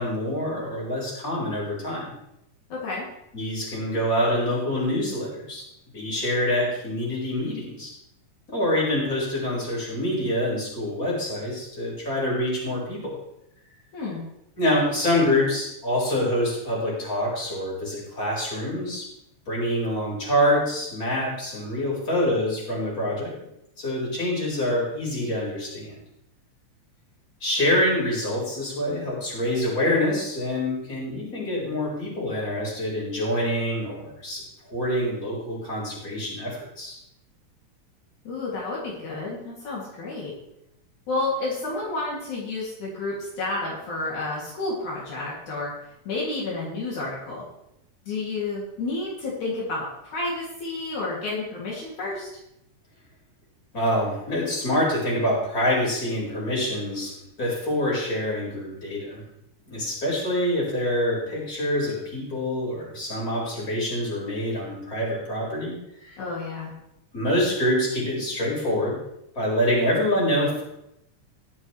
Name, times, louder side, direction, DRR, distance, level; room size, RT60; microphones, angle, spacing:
voice 1, 0.0-2.1 3.3-5.6 5.9-7.9 8.5-13.2 14.6-19.0 19.5-23.3 23.8-25.9 27.4-34.4 34.7-36.9 53.7-57.1 57.4-59.2 59.7-65.8 66.1-66.2 67.1-69.0 69.4-70.6, left 1 dB, 25° left, -5 dB, 5.2 m, -26 dB
voice 2, 2.7-3.0 13.9-14.2 38.3-40.3 41.1-45.7 46.1-47.4 48.1-52.3 66.2-66.7, left 2 dB, 70° left, -5 dB, 4.0 m, -30 dB
21.0 x 7.4 x 3.2 m, 0.82 s
omnidirectional pair, 3.5 m